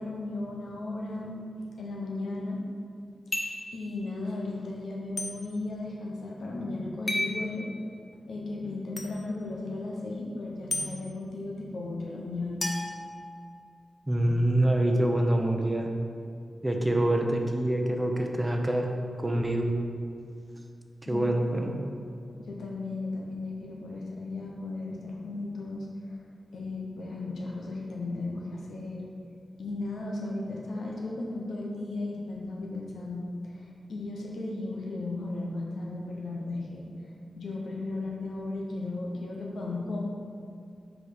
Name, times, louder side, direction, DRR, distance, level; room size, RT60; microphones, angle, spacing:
voice 1, 0.0-1.4 1.8-2.6 3.4-3.5 3.7-7.7 8.3-12.6 21.1-21.7 22.4-25.9 26.5-29.1 29.6-33.3 33.5-36.9 37.4-40.0, left 2 dB, 85° left, -1 dB, 0.8 m, -35 dB
sound 1, 3.3-3.7 5.2-5.3 7.1-7.4 9.0-9.1 10.7-10.9 12.6-13.7, left 1 dB, 50° left, 0.8 m, -32 dB
voice 2, 14.1-15.9 16.6-18.9 19.2-19.7 21.1-21.8, right 1 dB, 20° right, 2 dB, 0.7 m, -25 dB
4.9 x 4.1 x 4.9 m, 2.4 s
cardioid pair, 50°, 0 cm